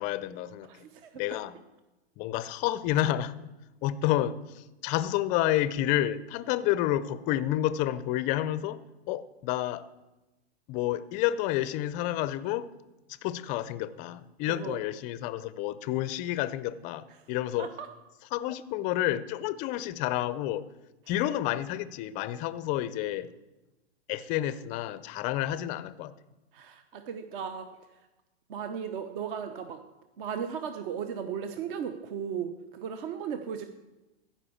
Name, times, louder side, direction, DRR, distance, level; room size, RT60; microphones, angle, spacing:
voice 1, 0.0-0.7 1.2-1.6 2.2-3.5 3.8-8.8 9.1-9.9 10.7-12.7 13.2-17.7 18.3-20.7 21.1-23.3 24.1-26.1, left 13 dB, 25° left, 16 dB, 0.4 m, -30 dB
voice 2, 0.7-1.1 14.5-14.8 17.6-17.9 26.5-27.7 28.5-29.8 30.2-33.7, right 7 dB, 50° right, 8 dB, 0.9 m, -36 dB
14.5 x 5.5 x 7.1 m, 1.0 s
hypercardioid pair, 130°, 33 cm